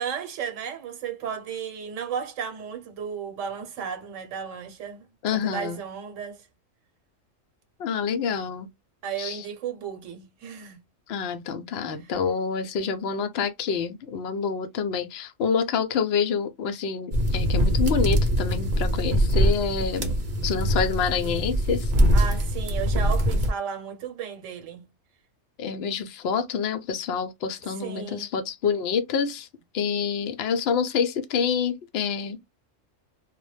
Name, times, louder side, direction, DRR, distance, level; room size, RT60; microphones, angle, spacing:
voice 1, 0.0-5.0 5.3-6.4 9.0-10.8 22.1-24.9 27.8-28.3, right 7 dB, 80° right, 1.0 m, -34 dB
voice 2, 5.2-5.8 7.8-8.7 9.2-9.4 11.1-20.2 20.4-21.9 25.6-29.5 29.7-32.5, left 6 dB, 65° left, 0.7 m, -27 dB
sound 1, 17.1-23.5, equal, 45° right, 0.7 m, -23 dB
2.2 x 2.1 x 3.1 m
omnidirectional pair, 1.3 m